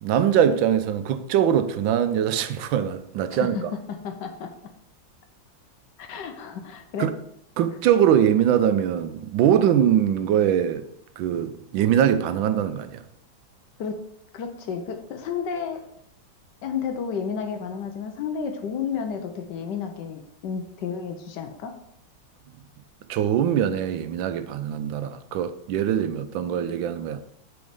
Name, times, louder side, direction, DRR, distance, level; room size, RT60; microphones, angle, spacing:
voice 1, 0.0-3.6 7.0-7.1 7.6-10.9 11.2-13.0 23.1-27.2, right 9 dB, 80° right, 1.3 m, -22 dB
voice 2, 3.3-3.6 3.9-4.5 6.0-7.1 13.8-14.0 14.3-15.8 16.6-21.7, left 6 dB, 70° left, 1.3 m, -31 dB
7.0 x 4.3 x 5.1 m
omnidirectional pair, 2.1 m